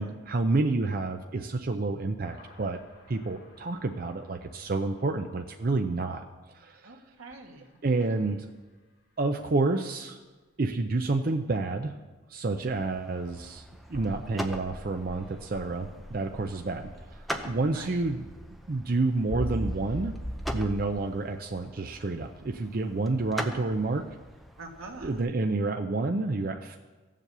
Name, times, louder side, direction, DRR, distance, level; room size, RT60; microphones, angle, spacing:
voice 1, 0.0-2.8 3.1-6.2 6.5-6.9 7.8-8.5 9.2-10.2 10.6-11.9 12.3-13.6 13.9-18.2 18.7-20.1 20.5-24.0 25.0-26.8, right 3 dB, 45° right, 5 dB, 0.5 m, -29 dB
sound 1, 2.2-4.8 7.3-7.4 13.9-20.9, equal, 55° left, 4.0 m, -41 dB
voice 2, 6.8-7.8 8.1-8.3 16.5-16.7 17.7-18.0 20.9-21.0 24.6-25.2, right 3 dB, 85° right, 2 dB, 1.7 m, -46 dB
sound 2, 12.7-25.2, equal, ahead, 0.6 m, -42 dB
15.5 x 7.4 x 6.7 m, 1.3 s
head